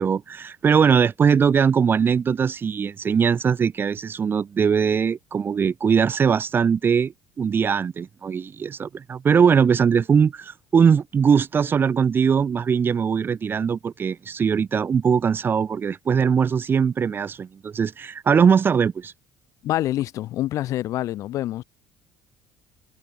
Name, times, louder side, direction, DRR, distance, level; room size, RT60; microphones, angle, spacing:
voice 1, 0.0-19.1, right 6 dB, 35° right, 0.7 m, -21 dB
voice 2, 19.6-21.6, left 14 dB, 60° left, 1.7 m, -26 dB
hypercardioid pair, 60°, 6 cm